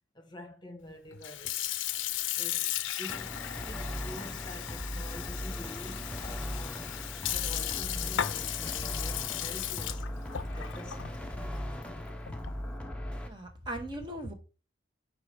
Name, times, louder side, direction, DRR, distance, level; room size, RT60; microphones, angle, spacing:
voice 1, 0.1-1.7 2.4-2.7 3.0-10.1 10.5-11.4, left 1 dB, 25° left, 1.0 m, -47 dB
Sink (filling or washing) / Fill (with liquid), 1.1-12.7, left 12 dB, 90° left, 0.5 m, -36 dB
sound 1, 3.1-13.3, equal, 5° left, 0.6 m, -38 dB
voice 2, 13.3-14.3, right 1 dB, 25° right, 1.1 m, -38 dB
5.0 x 4.7 x 5.0 m
head